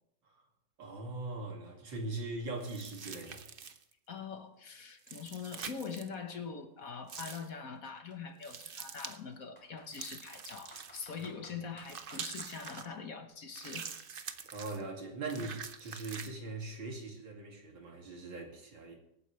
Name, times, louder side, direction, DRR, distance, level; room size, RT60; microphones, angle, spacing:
voice 1, 0.8-3.4 14.5-19.0, right 2 dB, 90° right, 3.2 m, -41 dB
sound 1, 2.6-3.9 5.0-6.1 7.1-7.5 8.4-9.2 9.9-11.3 11.8-12.9 13.5-14.8 15.3-16.3, right 6 dB, 55° right, 0.6 m, -45 dB
voice 2, 4.1-13.9 15.4-15.5, left 5 dB, 55° left, 1.5 m, -43 dB
Computer keyboard, 4.5-4.6 4.9-6.9 7.7-7.8 8.1-8.2 8.8-10.1 10.5-12.8, equal, 5° left, 3.8 m, -56 dB
24.5 x 9.3 x 3.3 m
omnidirectional pair, 2.0 m